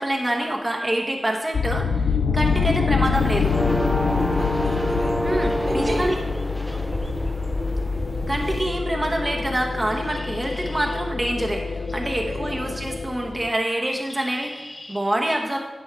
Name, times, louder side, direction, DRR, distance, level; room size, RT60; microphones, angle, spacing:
voice 1, 0.0-3.6 5.2-6.1 8.3-15.6, right 1 dB, 30° right, 1 dB, 1.0 m, -26 dB
sound 1, 1.5-13.5, left 5 dB, 80° left, 0.4 m, -26 dB
sound 2, 3.1-8.6, equal, 5° left, 0.4 m, -27 dB
voice 2, 4.1-5.3 5.6-6.2 6.7-7.0 12.2-12.9, right 1 dB, 70° right, 0 dB, 1.8 m, -36 dB
Bird, 9.5-15.0, left 1 dB, 55° left, 1.9 m, -45 dB
10.0 x 5.4 x 4.6 m, 1.3 s
cardioid pair, 40°, 0 cm